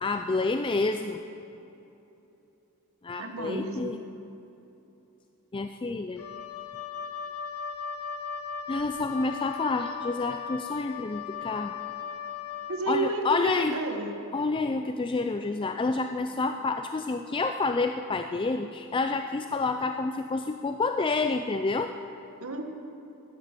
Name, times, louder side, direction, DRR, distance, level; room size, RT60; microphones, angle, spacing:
voice 1, 0.0-1.2 3.0-4.0 5.5-6.2 8.7-11.7 12.9-13.8 14.3-21.9, left 3 dB, 20° left, 7 dB, 0.3 m, -29 dB
voice 2, 3.2-4.0 12.7-14.2 22.4-22.6, right 2 dB, 65° right, 5 dB, 1.3 m, -31 dB
Wind instrument woodwind instrument, 6.2-12.9, left 6 dB, 85° left, 0.9 m, -37 dB
13.5 x 9.9 x 7.4 m, 2.9 s
head